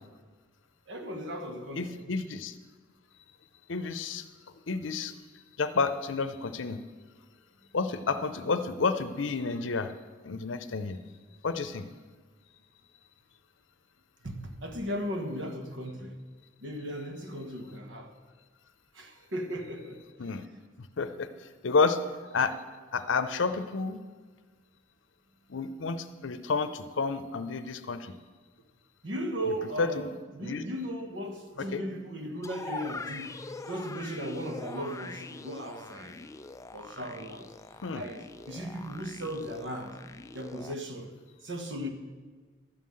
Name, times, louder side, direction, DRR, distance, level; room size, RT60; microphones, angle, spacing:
voice 1, 0.9-2.0 14.2-16.2 16.6-18.1 18.9-20.0 29.0-36.2 36.7-37.5 37.9-38.2 38.5-40.0 40.3-41.1 41.4-41.9, equal, 75° right, 1.3 m, -37 dB
voice 2, 1.8-2.5 3.7-4.2 4.7-5.1 5.6-6.8 7.7-9.9 10.2-11.0 11.4-11.9 20.2-20.5 20.8-22.0 22.3-22.6 22.9-24.0 25.5-28.1 29.5-30.1 30.4-30.6 31.6-31.8 37.8-38.0, left 4 dB, 85° left, 0.6 m, -30 dB
sound 1, 32.4-40.7, left 3 dB, 15° left, 0.3 m, -43 dB
12.0 x 5.6 x 7.7 m
head